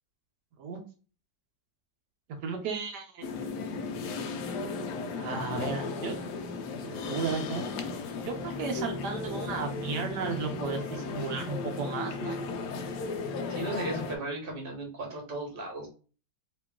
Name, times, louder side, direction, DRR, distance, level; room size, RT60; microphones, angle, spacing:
voice 1, 2.4-3.5 5.1-6.3 6.8-7.7 8.2-12.4, right 5 dB, 70° right, 3 dB, 1.3 m, -34 dB
sound 1, 3.2-14.2, left 4 dB, 75° left, 1.1 m, -35 dB
voice 2, 13.5-15.9, right 1 dB, 35° right, 0 dB, 1.2 m, -36 dB
3.0 x 3.0 x 3.5 m, 0.37 s
omnidirectional pair, 1.9 m